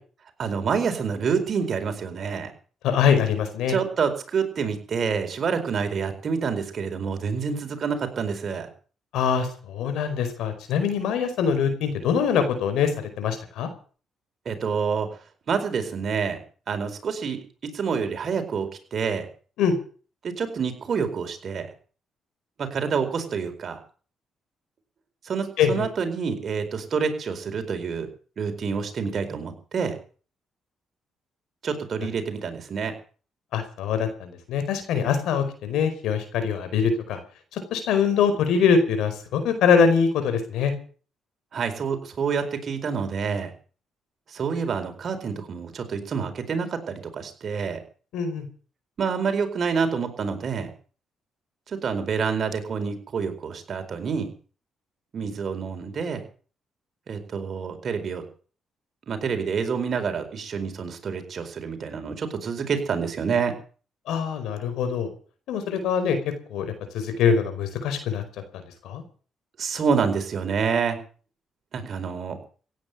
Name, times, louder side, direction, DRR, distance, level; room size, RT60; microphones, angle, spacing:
voice 1, 0.4-2.5 3.7-8.7 14.4-15.1 15.5-16.4 16.7-19.3 20.2-21.7 22.6-23.8 25.2-28.1 28.4-30.0 31.6-32.9 41.5-43.5 44.3-47.8 49.0-50.7 51.7-54.3 55.1-56.2 57.1-58.2 59.1-63.5 69.6-71.0 71.7-72.4, right 6 dB, 50° right, 6 dB, 4.6 m, -27 dB
voice 2, 2.8-3.8 9.1-13.7 19.6-19.8 25.6-25.8 33.5-37.2 37.5-40.7 48.1-48.5 64.1-65.1 65.5-66.2 66.5-68.2 68.5-69.0, left 6 dB, 85° left, 9 dB, 4.9 m, -23 dB
16.5 x 9.5 x 8.1 m, 0.41 s
cardioid pair, 90°, 0 cm